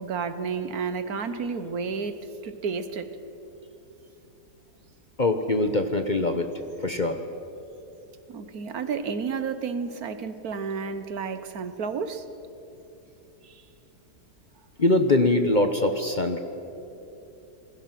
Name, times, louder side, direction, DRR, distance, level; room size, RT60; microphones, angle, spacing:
voice 1, 0.0-3.1 8.3-12.3 13.4-13.6, right 5 dB, 65° right, 10 dB, 1.5 m, -31 dB
voice 2, 5.2-6.5 6.8-7.2 14.8-16.4, left 2 dB, 35° left, 7 dB, 1.0 m, -22 dB
27.5 x 21.0 x 6.0 m, 2.9 s
omnidirectional pair, 1.7 m